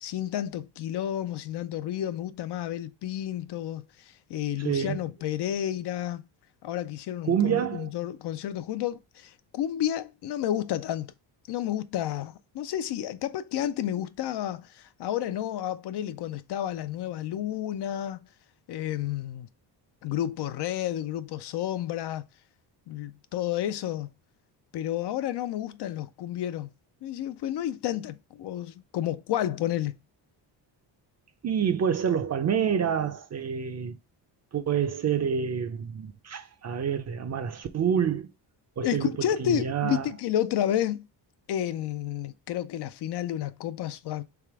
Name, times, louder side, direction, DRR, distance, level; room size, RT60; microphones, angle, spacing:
voice 1, 0.0-6.2 6.6-11.1 11.5-18.3 18.7-19.5 20.0-22.2 22.9-24.1 24.7-26.7 27.0-29.9 38.8-41.1 41.5-44.2, left 11 dB, 60° left, 0.5 m, -31 dB
voice 2, 4.6-5.0 7.2-7.9 31.4-34.0 34.5-38.3 38.8-40.1, right 8 dB, 35° right, 0.5 m, -27 dB
3.5 x 3.3 x 4.6 m
cardioid pair, 110°, 46 cm